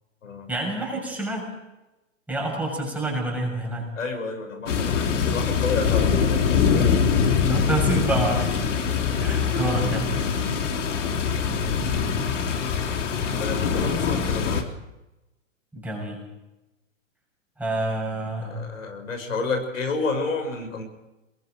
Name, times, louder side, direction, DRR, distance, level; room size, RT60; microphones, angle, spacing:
voice 1, 0.5-1.5 2.3-3.9 7.4-8.7 9.2-10.2 15.7-16.2 17.6-18.6, right 2 dB, 5° right, -1 dB, 6.9 m, -28 dB
voice 2, 4.0-7.3 8.9-9.0 9.5-9.6 11.6-12.0 13.4-14.7 18.4-20.8, left 3 dB, 90° left, 4 dB, 7.3 m, -31 dB
sound 1, 4.7-14.6, left 6 dB, 70° left, 3.5 m, -23 dB
23.0 x 22.0 x 5.3 m, 1.0 s
hypercardioid pair, 145°, 38 cm